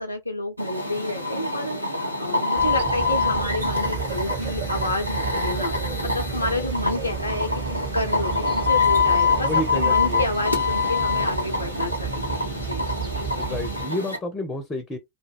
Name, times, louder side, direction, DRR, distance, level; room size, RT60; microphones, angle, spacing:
voice 1, 0.0-12.4 12.6-12.8, left 1 dB, 85° left, 0.4 m, -30 dB
sound 1, 0.6-14.2, left 4 dB, 90° right, 0.8 m, -25 dB
sound 2, 2.6-13.8, right 7 dB, 40° right, 1.0 m, -33 dB
sound 3, 2.7-8.0, right 9 dB, 55° right, 0.4 m, -40 dB
voice 2, 9.4-10.2 13.4-15.0, left 1 dB, 15° left, 0.5 m, -30 dB
2.2 x 2.0 x 3.3 m
figure-of-eight pair, 90°, 0 cm